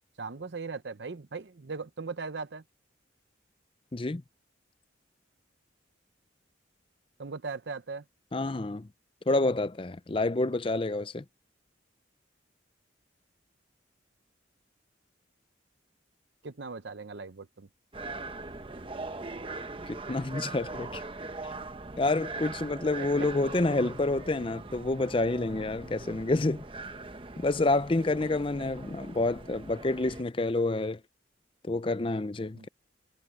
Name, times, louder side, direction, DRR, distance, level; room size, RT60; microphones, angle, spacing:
voice 1, 0.2-2.6 7.2-8.0 16.4-17.7 23.0-23.3 32.5-32.7, right 4 dB, 65° right, 0.8 m, -39 dB
voice 2, 3.9-4.2 8.3-8.9 9.3-11.2 19.9-21.0 22.0-26.6 27.4-31.0 31.6-32.7, left 2 dB, 30° left, 0.5 m, -28 dB
sound 1, 17.9-30.2, right 3 dB, 30° right, 1.0 m, -41 dB
head